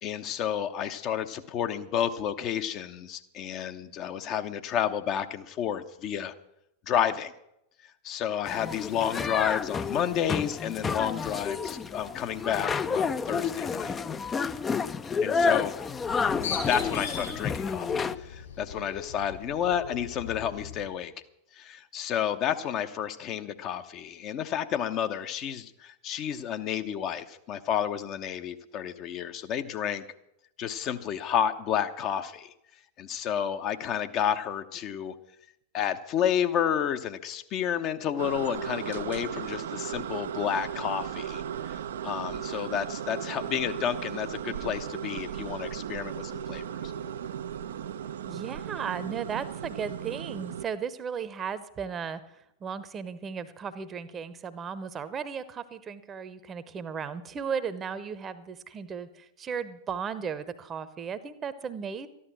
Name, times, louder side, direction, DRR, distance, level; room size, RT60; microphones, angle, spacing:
voice 1, 0.0-6.3 6.9-7.3 8.0-14.0 15.2-15.7 16.7-21.1 21.5-30.0 30.6-32.5 33.0-35.1 35.7-46.6, left 9 dB, 35° left, 8 dB, 0.9 m, -31 dB
sound 1, 8.5-18.1, left 5 dB, 20° left, 0.5 m, -30 dB
Bird, 16.0-20.9, left 6 dB, 60° left, 5.2 m, -39 dB
sound 2, 38.2-50.6, right 9 dB, 60° right, 0.5 m, -36 dB
voice 2, 48.3-62.1, right 6 dB, 25° right, 14 dB, 0.9 m, -35 dB
13.5 x 11.0 x 6.1 m, 0.81 s
figure-of-eight pair, 90°, 0 cm